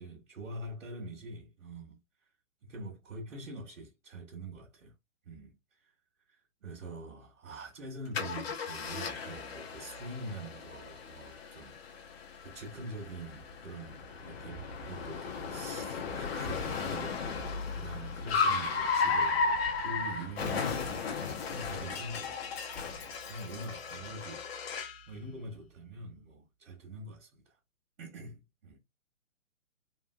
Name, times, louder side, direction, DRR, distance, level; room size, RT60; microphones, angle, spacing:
voice 1, 0.0-2.0 2.6-4.9 5.3-5.9 6.3-11.8 12.4-21.2 21.5-22.6 22.9-24.5 25.1-27.4 28.0-28.8, right 2 dB, 65° right, 1.3 m, -44 dB
Car, 8.1-25.0, left 4 dB, 50° left, 0.9 m, -35 dB
3.4 x 2.7 x 2.3 m
figure-of-eight pair, 130°, 39 cm